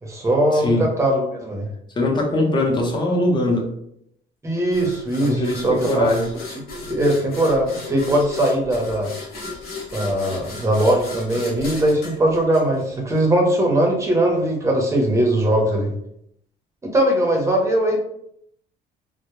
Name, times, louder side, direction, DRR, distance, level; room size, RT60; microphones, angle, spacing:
voice 1, 0.0-1.7 4.4-6.1 6.9-9.1 9.9-15.9 16.8-18.0, right 1 dB, 15° right, 0 dB, 0.7 m, -20 dB
voice 2, 0.5-0.9 1.9-3.7 5.2-6.3, left 1 dB, 25° left, -1 dB, 0.7 m, -21 dB
sound 1, 4.7-13.2, left 3 dB, 70° left, 0.8 m, -35 dB
2.1 x 2.0 x 3.0 m, 0.74 s
cardioid pair, 110°, 17 cm